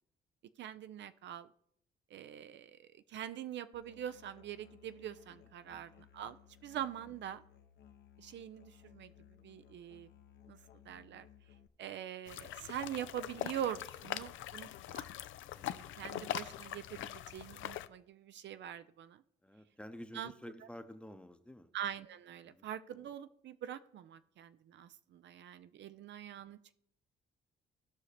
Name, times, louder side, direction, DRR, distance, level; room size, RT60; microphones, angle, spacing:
voice 1, 0.6-1.5 2.1-6.4 6.6-7.4 8.2-9.1 9.4-10.1 10.5-10.6 10.9-11.3 11.8-15.1 15.7-19.2 20.1-20.3 21.7-26.7, right 10 dB, 65° right, 12 dB, 0.5 m, -44 dB
Musical instrument, 3.7-11.7, left 10 dB, 60° left, 0.9 m, -61 dB
sound 1, 12.3-17.9, left 13 dB, 75° left, 0.5 m, -42 dB
voice 2, 19.4-21.7 22.4-22.7 25.9-26.0, left 1 dB, 5° left, 9 dB, 0.8 m, -51 dB
16.0 x 5.7 x 3.3 m, 0.70 s
cardioid pair, 90°, 20 cm